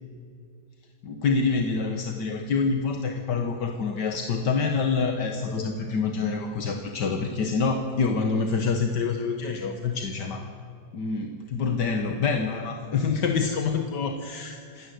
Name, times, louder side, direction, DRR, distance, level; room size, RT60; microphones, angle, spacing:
voice 1, 1.0-10.4 10.9-14.9, left 5 dB, 75° left, 4 dB, 1.9 m, -26 dB
27.5 x 13.0 x 9.4 m, 2.4 s
omnidirectional pair, 1.8 m